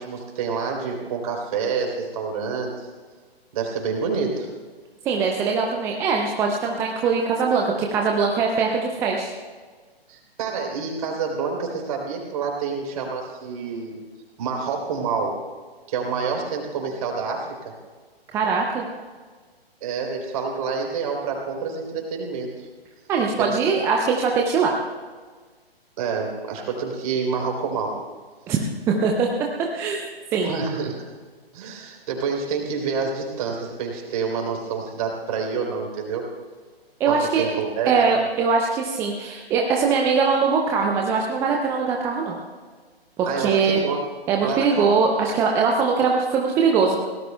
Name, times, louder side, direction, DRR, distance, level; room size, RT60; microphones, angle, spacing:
voice 1, 0.0-2.9 3.5-4.5 10.1-13.9 14.4-15.3 15.9-17.7 19.8-22.7 23.4-23.5 23.9-24.0 26.0-27.9 30.4-31.1 31.5-36.2 37.1-38.1 43.2-44.0 44.4-44.9, right 5 dB, 35° right, 1 dB, 3.6 m, -28 dB
voice 2, 5.0-9.3 18.3-18.9 23.1-24.7 28.5-28.6 28.9-29.3 29.7-30.0 30.3-30.5 37.0-37.5 37.9-42.4 43.2-43.8 44.3-47.0, right 5 dB, 10° right, 0 dB, 0.5 m, -21 dB
23.5 x 18.0 x 2.2 m, 1.5 s
figure-of-eight pair, 130°, 31 cm